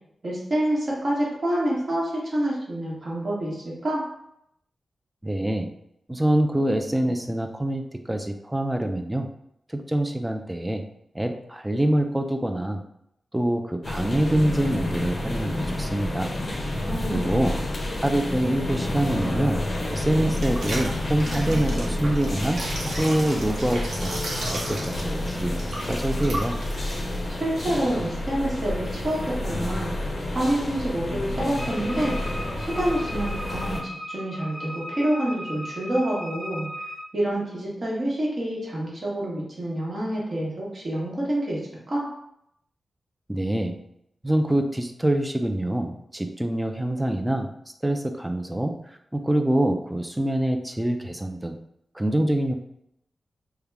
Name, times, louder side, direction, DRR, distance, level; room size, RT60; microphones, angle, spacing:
voice 1, 0.2-4.0 16.8-17.5 27.3-29.9 30.3-32.1 32.6-33.8 34.1-36.7 37.1-41.6 41.9-42.1, right 1 dB, 45° right, -5 dB, 1.2 m, -27 dB
voice 2, 5.2-5.7 6.1-9.3 9.7-10.8 11.1-12.8 13.3-16.3 17.1-17.6 18.0-19.6 19.9-22.6 23.0-24.1 24.5-26.6 43.3-43.8 44.2-47.5 47.8-48.8 49.1-51.6 51.9-52.5, right 1 dB, 10° right, 5 dB, 0.3 m, -25 dB
sound 1, 13.8-33.8, left 1 dB, 40° left, 0.6 m, -29 dB
sound 2, 20.0-28.0, right 1 dB, 75° right, 0.8 m, -36 dB
Wind instrument woodwind instrument, 31.6-37.1, equal, 15° left, 1.3 m, -37 dB
3.4 x 2.2 x 3.4 m, 0.76 s
wide cardioid pair, 115°, 0 cm